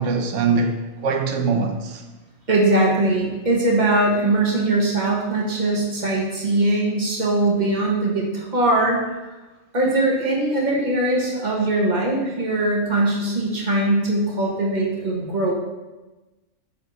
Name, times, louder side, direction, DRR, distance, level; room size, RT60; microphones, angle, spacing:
voice 1, 0.0-2.0, right 4 dB, 70° right, 1.0 m, -22 dB
voice 2, 2.5-9.0 9.7-15.5, right 2 dB, 35° right, 1.3 m, -21 dB
7.2 x 3.5 x 4.1 m
omnidirectional pair, 1.4 m